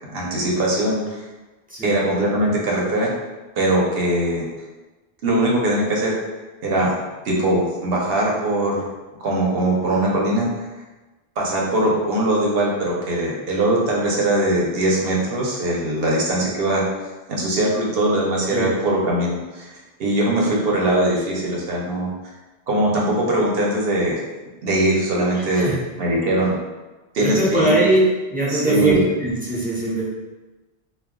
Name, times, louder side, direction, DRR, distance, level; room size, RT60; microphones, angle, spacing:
voice 1, 0.1-1.2 1.8-3.1 3.5-4.5 5.2-6.1 6.6-6.9 7.2-8.9 9.2-10.5 11.4-16.8 17.3-19.7 20.0-22.1 22.7-24.2 24.6-25.7 26.0-26.6 27.1-27.8 28.5-29.0, right 1 dB, 65° right, -3 dB, 0.9 m, -21 dB
voice 2, 25.3-25.7 27.2-28.0 28.3-30.0, right 2 dB, 10° right, -7 dB, 0.5 m, -21 dB
2.2 x 2.2 x 3.5 m, 1.2 s
omnidirectional pair, 1.1 m